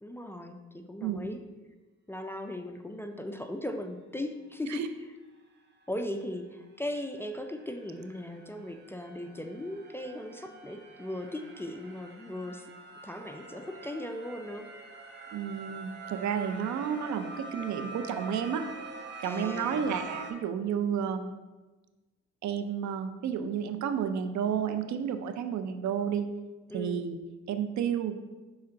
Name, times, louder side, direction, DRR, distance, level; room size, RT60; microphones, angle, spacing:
voice 1, 0.0-1.4 2.1-4.8 5.9-12.7 13.0-14.7 19.2-19.8 26.7-27.0, left 1 dB, 10° left, 5 dB, 0.4 m, -38 dB
sound 1, 5.8-5.9 6.2-20.3, right 3 dB, 35° right, 1.0 m, -45 dB
voice 2, 15.3-18.7 19.2-21.3 22.4-26.3 26.7-27.2 27.5-28.2, right 8 dB, 70° right, 8 dB, 0.6 m, -31 dB
5.8 x 4.3 x 3.7 m, 1.2 s
cardioid pair, 90°, 30 cm